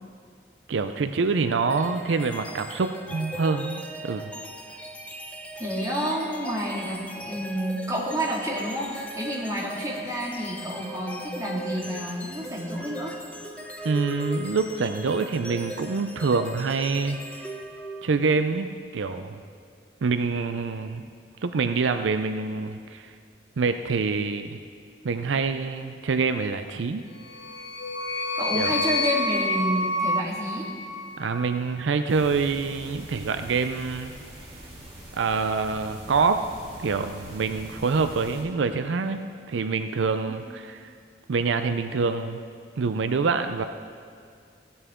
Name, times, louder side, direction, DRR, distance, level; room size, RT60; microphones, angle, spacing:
voice 1, 0.7-4.3 13.8-17.5 18.0-19.4 20.0-21.1 21.4-23.1 23.6-24.6 25.0-27.1 28.5-28.7 31.2-34.1 35.1-36.4 36.8-40.9 41.3-42.4 42.8-43.6, right 4 dB, 90° right, 8 dB, 0.5 m, -26 dB
sound 1, 1.7-18.3, equal, 5° left, 0.7 m, -38 dB
voice 2, 5.6-13.2 28.3-30.7 40.3-40.4, equal, 20° right, -4 dB, 2.0 m, -29 dB
sound 2, 27.2-31.6, left 2 dB, 65° left, 0.7 m, -28 dB
sound 3, 32.1-38.4, right 1 dB, 35° right, 3.2 m, -43 dB
16.0 x 9.5 x 3.7 m, 2.2 s
head